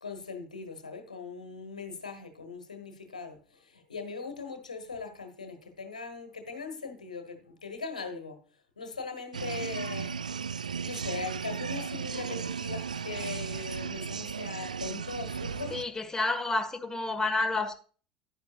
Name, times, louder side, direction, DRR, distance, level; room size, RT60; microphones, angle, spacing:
voice 1, 0.0-8.4 8.8-10.2 10.8-15.7, left 4 dB, 85° left, 1.4 m, -40 dB
sound 1, 9.3-15.8, right 6 dB, 85° right, 0.3 m, -35 dB
voice 2, 15.7-17.7, left 2 dB, 15° left, 1.6 m, -29 dB
11.0 x 9.6 x 2.4 m
figure-of-eight pair, 70°, 4 cm